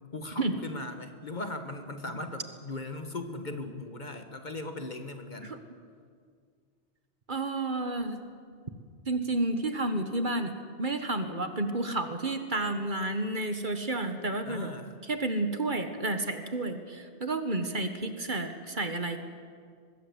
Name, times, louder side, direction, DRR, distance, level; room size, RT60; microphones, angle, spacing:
voice 1, 0.1-5.6 14.4-15.0, left 2 dB, 40° left, 7 dB, 1.7 m, -38 dB
voice 2, 7.3-8.2 9.1-10.5 10.8-14.7 15.1-19.2, right 2 dB, 45° right, 7 dB, 1.7 m, -31 dB
23.5 x 20.5 x 8.2 m, 2.1 s
omnidirectional pair, 1.2 m